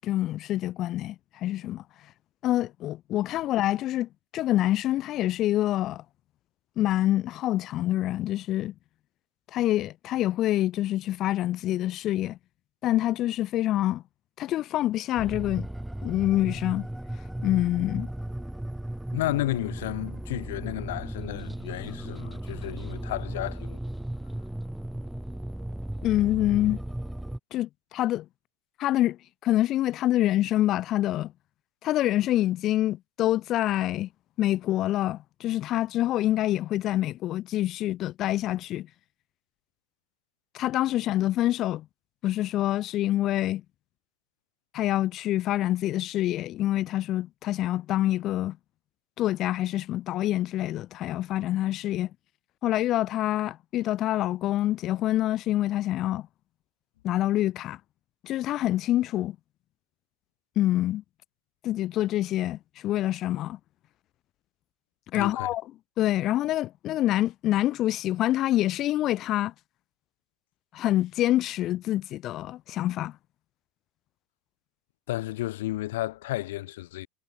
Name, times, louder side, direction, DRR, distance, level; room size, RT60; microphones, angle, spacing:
voice 1, 0.0-1.8 2.4-6.0 6.8-8.7 9.5-12.4 12.8-14.0 14.4-15.7 16.0-16.9 17.4-18.1 26.0-26.8 27.5-28.2 28.8-29.2 29.4-31.3 31.8-34.1 34.4-38.9 40.5-41.8 42.2-43.6 44.7-48.6 49.2-52.1 52.6-56.3 57.0-57.8 58.2-59.4 60.6-61.0 61.6-63.6 65.1-65.6 66.0-69.5 70.7-73.1, left 14 dB, 45° left, 6.5 m, -26 dB
sound 1, 15.2-27.4, right 1 dB, 5° right, 7.5 m, -36 dB
voice 2, 19.1-23.8 65.1-65.5 75.1-77.1, left 16 dB, 70° left, 7.3 m, -32 dB
hypercardioid pair, 105°, 0 cm